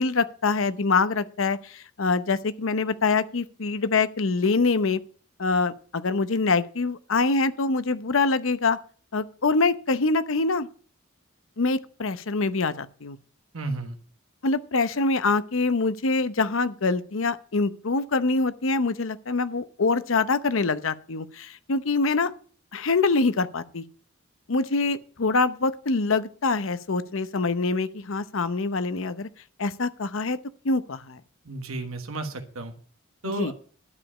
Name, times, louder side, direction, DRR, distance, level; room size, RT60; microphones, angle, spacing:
voice 1, 0.0-5.0 5.4-8.8 9.1-10.7 11.6-13.2 14.4-22.3 22.7-23.8 24.5-29.3 29.6-30.4 30.6-31.2 33.4-33.5, left 3 dB, 70° left, 0.8 m, -25 dB
voice 2, 13.5-14.0 31.4-32.7 33.2-33.5, right 3 dB, 90° right, 1.4 m, -32 dB
12.0 x 5.1 x 8.5 m
head